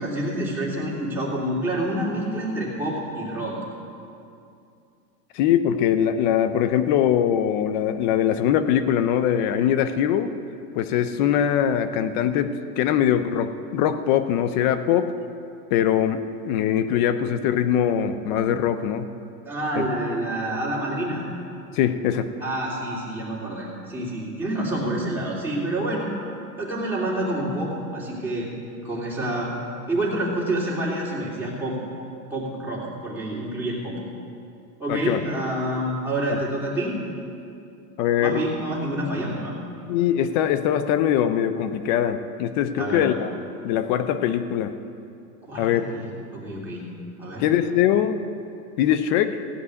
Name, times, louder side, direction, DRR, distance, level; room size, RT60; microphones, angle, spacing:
voice 1, 0.0-3.5 19.5-21.2 22.4-26.1 26.6-28.5 28.8-29.5 29.9-31.8 32.3-33.9 34.8-37.0 38.2-39.5 42.8-43.1 45.4-46.0 46.3-46.8 47.2-47.5, right 1 dB, 5° right, -6 dB, 3.0 m, -28 dB
voice 2, 5.3-10.3 10.7-15.1 15.7-19.1 19.7-19.9 21.7-22.3 34.9-35.2 36.3-36.4 38.0-38.4 39.9-43.3 43.6-44.7 45.6-45.9 47.4-48.2 48.8-49.4, left 10 dB, 30° left, 11 dB, 0.4 m, -22 dB
15.5 x 5.4 x 9.5 m, 2.5 s
supercardioid pair, 140°, 48 cm